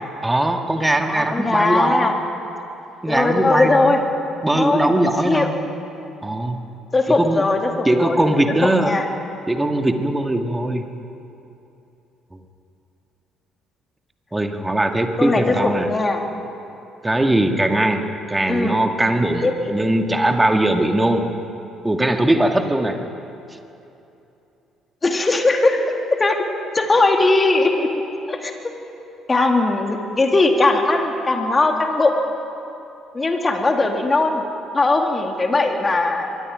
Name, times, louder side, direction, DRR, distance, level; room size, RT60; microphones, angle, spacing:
voice 1, 0.2-2.1 3.0-4.0 4.4-5.6 6.2-6.6 7.1-7.4 7.8-8.9 9.5-10.9 14.3-15.9 17.0-21.3 21.8-23.0, right 1 dB, 15° right, 4 dB, 2.3 m, -20 dB
voice 2, 1.1-2.1 3.1-4.0 4.5-4.9 5.2-5.5 6.9-8.2 8.6-9.1 15.2-16.2 18.5-18.8 19.4-19.7 25.0-25.8 26.2-26.4 26.7-27.9 28.3-28.5 29.3-32.1 33.1-34.4 34.7-36.3, left 2 dB, 25° left, 3 dB, 3.0 m, -19 dB
24.5 x 22.5 x 5.3 m, 2.8 s
figure-of-eight pair, 50°, 0 cm